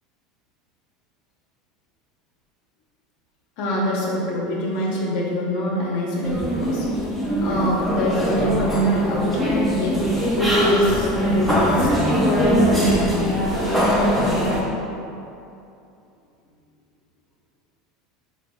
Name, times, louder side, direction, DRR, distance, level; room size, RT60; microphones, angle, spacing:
voice 1, 3.6-6.9 7.4-9.4 9.7-10.0 10.3-12.3, equal, 65° left, -4 dB, 0.8 m, -24 dB
sound 1, 6.2-14.6, equal, ahead, 0.6 m, -21 dB
3.9 x 2.5 x 3.4 m, 2.7 s
supercardioid pair, 140°, 0 cm